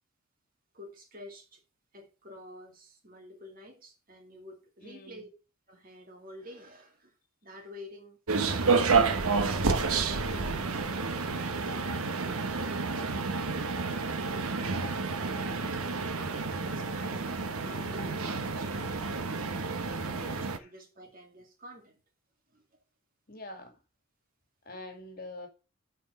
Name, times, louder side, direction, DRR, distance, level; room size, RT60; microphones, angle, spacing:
voice 1, 0.7-1.6 1.9-5.3 5.7-7.1 7.4-8.2 12.2-13.4 14.1-15.3 15.7-19.2 20.0-22.0 22.5-22.6, left 1 dB, 40° right, 2.0 m, -50 dB
voice 2, 4.8-5.3 20.1-20.3 20.6-20.7 23.3-23.8 24.6-25.5, left 2 dB, 40° left, 2.2 m, -45 dB
sound 1, 8.3-20.6, right 4 dB, 85° right, 1.1 m, -30 dB
11.5 x 4.5 x 5.4 m
head